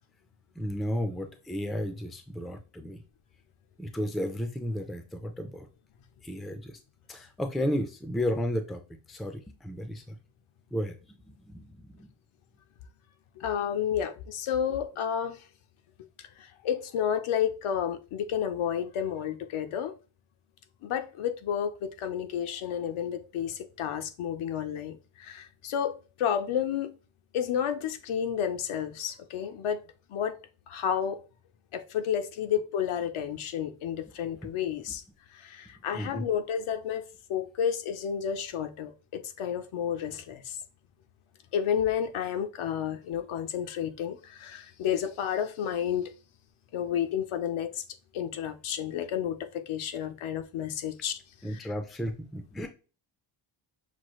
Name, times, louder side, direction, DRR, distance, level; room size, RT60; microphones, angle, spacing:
voice 1, 0.6-3.0 3.8-5.7 6.2-6.8 7.1-8.8 9.1-10.2 10.7-10.9 11.3-12.1 35.9-36.2 51.4-52.7, equal, ahead, 0.4 m, -33 dB
voice 2, 13.4-15.4 16.4-19.9 20.8-26.9 27.3-30.4 30.7-31.2 31.7-35.0 35.3-40.6 41.5-46.1 46.7-47.8 48.1-51.2 51.5-51.6, left 9 dB, 75° left, 0.7 m, -31 dB
6.1 x 2.3 x 3.0 m
cardioid pair, 125°, 49 cm